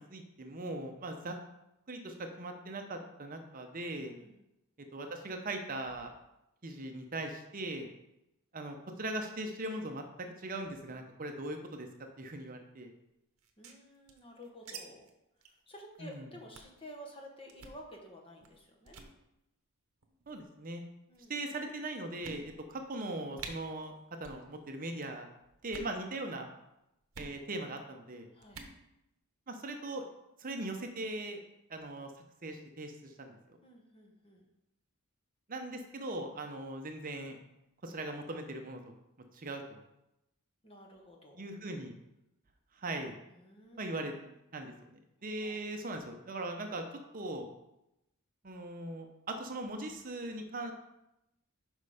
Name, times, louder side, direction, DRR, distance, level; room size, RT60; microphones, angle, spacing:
voice 1, 0.0-1.4 1.9-4.1 4.9-6.1 6.6-7.9 8.5-11.9 12.2-12.9 16.0-16.3 20.3-20.8 21.3-23.9 24.2-25.3 25.6-26.5 27.2-28.3 29.5-30.0 30.4-31.4 31.7-32.1 32.4-33.3 35.5-37.4 37.8-38.9 39.3-39.8 41.4-41.9 42.7-43.2 43.8-44.1 44.5-46.8 47.1-47.5 48.4-50.7, right 2 dB, 40° right, 4 dB, 0.7 m, -40 dB
voice 2, 4.1-4.4 13.6-15.1 15.5-19.0 21.1-21.3 28.3-28.7 33.6-34.5 40.6-41.5 43.3-44.3 45.4-45.6, equal, 25° left, 0 dB, 1.2 m, -52 dB
sound 1, 13.4-14.8 15.0-15.1 15.4-15.6 15.9-16.1 16.5-16.8 17.5-17.8 18.4-18.6 18.9-19.1 20.0-20.4 21.1-21.2 21.7-21.8 22.2-22.8 23.0-23.1 23.4-23.5 24.2-24.4 24.7-25.1 25.6-26.0 27.1-27.3 28.4-28.8, right 5 dB, 65° right, 1.0 m, -48 dB
6.4 x 5.4 x 4.9 m, 0.88 s
head